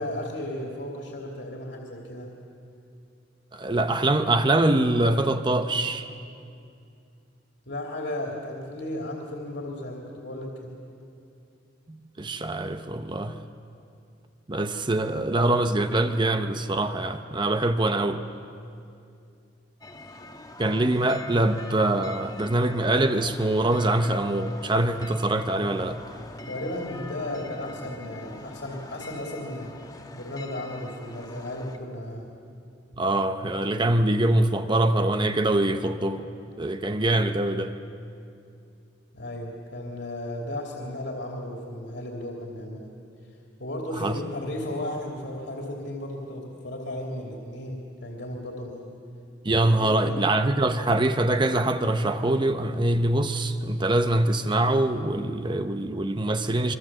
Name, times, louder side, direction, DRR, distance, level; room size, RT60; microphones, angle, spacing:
voice 1, 0.0-2.3 7.7-10.7 26.4-29.7 30.1-32.3 39.1-42.9 43.6-48.9 49.5-50.2, left 1 dB, 65° left, 0 dB, 3.1 m, -35 dB
voice 2, 3.5-6.1 11.9-13.4 14.5-18.2 20.6-26.0 33.0-36.2 36.6-37.7 44.0-44.2 49.4-56.7, right 1 dB, 25° right, 8 dB, 0.8 m, -24 dB
sound 1, 19.8-31.8, left 2 dB, 20° left, 1.4 m, -43 dB
25.0 x 23.5 x 7.6 m, 2.5 s
head